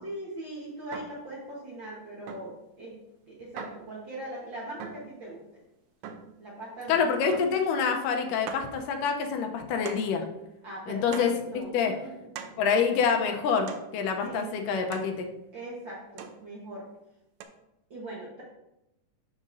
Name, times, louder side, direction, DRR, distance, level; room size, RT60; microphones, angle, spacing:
voice 1, 0.0-2.9 3.3-5.4 6.4-7.2 10.6-12.5 14.2-14.6 15.5-16.9 17.9-18.4, right 1 dB, 60° right, -5 dB, 1.3 m, -40 dB
sound 1, 0.9-1.3 2.3-2.6 3.6-3.9 4.8-5.2 6.0-6.4 7.3-7.7 8.0-8.1 8.5-8.7 9.9-10.2 11.1-11.5 12.4-12.7 13.7-14.0 14.9-15.2 16.2-16.5 17.4-17.5, right 7 dB, 80° right, 1.5 m, -41 dB
voice 2, 6.9-10.3 10.9-11.3 11.7-11.9 12.6-15.3, left 6 dB, 85° left, 4 dB, 2.3 m, -26 dB
11.5 x 5.0 x 2.6 m, 0.89 s
omnidirectional pair, 3.7 m